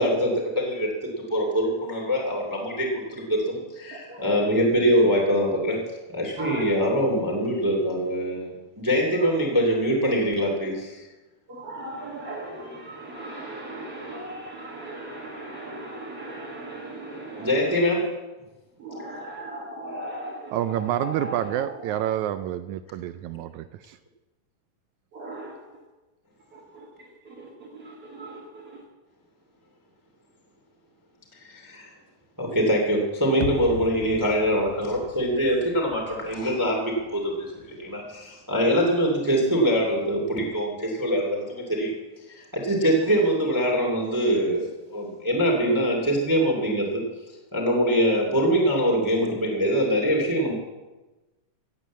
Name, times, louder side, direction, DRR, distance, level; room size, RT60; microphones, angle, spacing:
voice 1, 0.0-5.8 6.1-11.0 17.4-18.1 31.5-31.9 32.4-42.0 42.3-47.0 47.5-50.5, equal, 5° right, -1 dB, 2.2 m, -24 dB
voice 2, 3.9-4.3 6.4-6.6 9.1-9.3 11.5-17.9 18.8-22.0 25.1-25.7 26.5-28.8, right 1 dB, 45° right, -4 dB, 2.9 m, -38 dB
voice 3, 20.5-24.0, right 12 dB, 80° right, 13 dB, 1.7 m, -28 dB
sound 1, 33.4-38.3 38.6-38.7, left 8 dB, 70° left, 2.1 m, -40 dB
16.5 x 8.4 x 7.5 m, 1.1 s
omnidirectional pair, 3.8 m